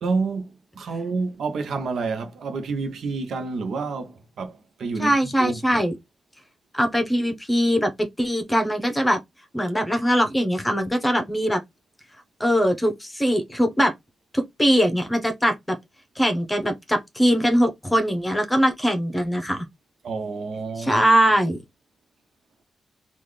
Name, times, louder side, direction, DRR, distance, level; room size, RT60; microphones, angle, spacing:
voice 1, 0.0-5.8 20.0-21.0, right 4 dB, 80° right, 0.8 m, -29 dB
voice 2, 5.0-5.9 6.7-9.2 9.5-11.6 12.4-13.9 14.3-15.5 16.2-19.7 20.8-21.6, equal, 10° left, 0.9 m, -21 dB
3.8 x 2.5 x 3.2 m
wide cardioid pair, 115°, 0 cm